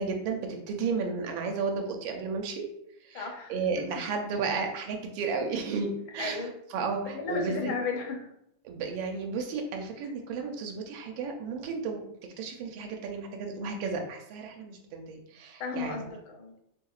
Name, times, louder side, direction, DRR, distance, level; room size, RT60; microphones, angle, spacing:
voice 1, 0.0-2.7 3.0-7.7 8.6-12.0 12.4-16.0, right 4 dB, 85° right, 2 dB, 1.4 m, -33 dB
voice 2, 3.1-3.6 6.2-6.5 7.0-8.3 15.6-16.5, left 4 dB, 80° left, 2 dB, 1.5 m, -34 dB
4.7 x 2.8 x 2.4 m, 0.77 s
omnidirectional pair, 2.1 m